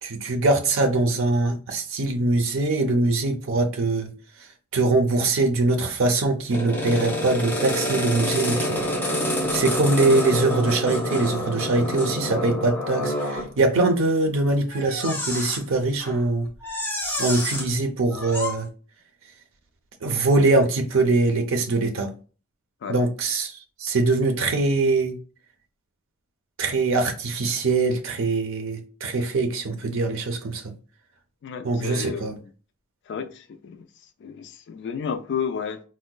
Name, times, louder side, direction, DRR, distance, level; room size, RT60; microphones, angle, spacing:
voice 1, 0.0-4.1 4.7-8.8 9.5-16.5 17.2-18.7 20.0-22.1 22.9-25.1 26.6-30.7 31.6-32.3, right 2 dB, 65° right, 0.5 m, -22 dB
sound 1, 6.5-13.5 14.7-15.6 16.0-16.2 16.6-17.7 18.1-18.6, equal, 10° left, 0.6 m, -27 dB
voice 2, 31.4-32.5 33.1-33.9 34.2-35.8, left 7 dB, 55° left, 0.3 m, -32 dB
4.5 x 2.1 x 2.2 m
head